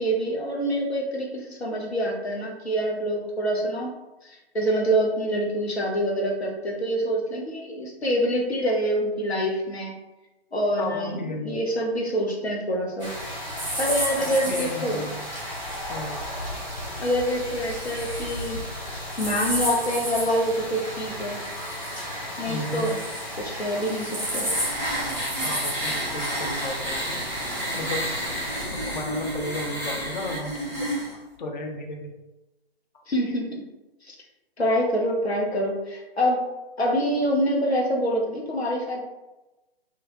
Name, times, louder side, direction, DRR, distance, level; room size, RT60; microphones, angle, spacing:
voice 1, 0.0-3.9 4.2-9.9 10.5-13.1 13.8-15.0 17.0-18.6 19.2-21.4 22.4-23.0 23.4-24.5 33.1-33.7 34.1-34.2 34.6-36.4 36.8-39.0, equal, 80° left, -1 dB, 1.0 m, -26 dB
voice 2, 10.8-11.6 14.2-15.2 15.9-16.2 22.5-22.9 25.4-27.2 27.7-28.1 28.7-30.9 31.4-32.1, left 2 dB, 50° left, 2 dB, 0.6 m, -34 dB
sound 1, 13.0-28.6, equal, 5° left, 0.4 m, -32 dB
sound 2, 23.6-31.1, right 1 dB, 25° left, 1.4 m, -31 dB
2.8 x 2.4 x 3.0 m, 1.0 s
figure-of-eight pair, 135°, 31 cm